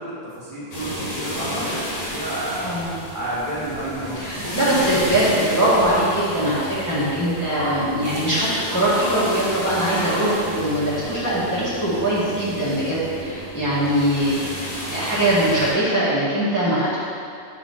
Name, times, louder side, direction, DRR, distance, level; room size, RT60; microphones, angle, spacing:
voice 1, 0.0-2.7 3.1-4.6, right 1 dB, 50° right, -9 dB, 1.7 m, -30 dB
sound 1, 0.7-15.7, equal, 40° left, 1.0 m, -32 dB
voice 2, 2.6-3.0 4.2-14.4 14.9-17.0, right 1 dB, 15° left, -11 dB, 1.4 m, -21 dB
sound 2, 7.0-13.6, equal, 65° left, 1.6 m, -34 dB
4.8 x 3.9 x 5.6 m, 2.4 s
omnidirectional pair, 1.1 m